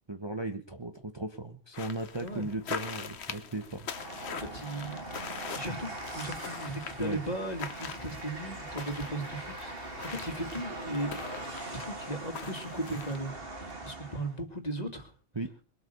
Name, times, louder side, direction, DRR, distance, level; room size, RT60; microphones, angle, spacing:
voice 1, 0.1-3.9 7.0-7.2 15.4-15.5, right 2 dB, 25° right, 6 dB, 1.1 m, -36 dB
sound 1, 1.7-13.3, left 6 dB, 65° left, 1.3 m, -43 dB
Train, 3.9-14.4, right 2 dB, 50° right, 2.7 m, -42 dB
voice 2, 4.3-5.1 5.5-11.2 11.7-15.1, right 1 dB, 35° left, 5 dB, 2.6 m, -37 dB
21.5 x 8.5 x 6.8 m, 0.38 s
omnidirectional pair, 1.2 m